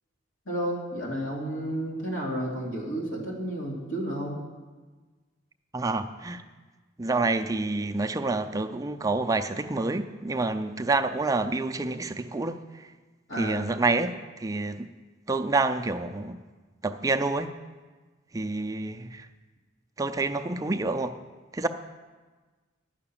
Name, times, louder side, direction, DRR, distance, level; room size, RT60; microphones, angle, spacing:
voice 1, 0.5-4.4 13.3-13.7, right 1 dB, 75° left, -3 dB, 2.7 m, -31 dB
voice 2, 5.7-6.4 7.0-12.9 13.4-14.9 15.3-16.4 16.8-17.5 18.3-19.3 20.0-21.2 21.5-21.7, right 3 dB, 15° right, 6 dB, 0.4 m, -28 dB
10.5 x 5.8 x 8.7 m, 1.3 s
head